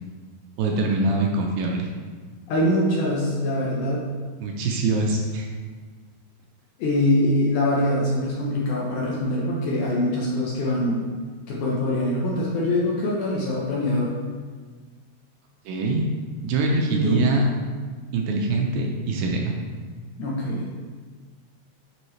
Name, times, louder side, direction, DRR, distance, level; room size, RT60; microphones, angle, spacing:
voice 1, 0.6-1.9 4.4-5.5 15.7-16.1 16.4-17.4 18.1-19.5, right 3 dB, 75° right, 1 dB, 2.3 m, -23 dB
voice 2, 2.5-4.0 6.8-11.0 11.5-14.1 16.9-17.2 20.2-20.7, left 1 dB, 70° left, -4 dB, 2.0 m, -23 dB
9.0 x 5.4 x 3.2 m, 1.5 s
omnidirectional pair, 4.5 m